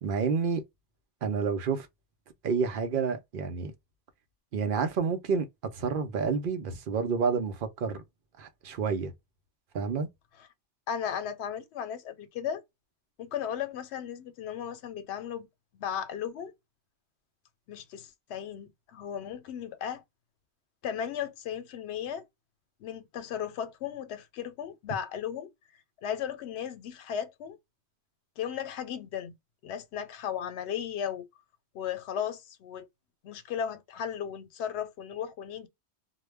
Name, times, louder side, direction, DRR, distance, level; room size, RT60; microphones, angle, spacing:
voice 1, 0.0-0.6 1.2-1.9 2.4-3.7 4.5-5.5 5.7-8.0 8.4-9.1 9.7-10.1, right 5 dB, 60° right, 0.7 m, -29 dB
voice 2, 10.9-12.6 13.2-15.5 15.7-16.5 17.7-20.0 20.8-22.3 22.8-25.5 26.0-27.6 28.4-29.4 29.6-31.3 31.7-32.9 33.2-35.7, left 8 dB, 85° left, 0.8 m, -35 dB
2.2 x 2.0 x 3.2 m
omnidirectional pair, 1.1 m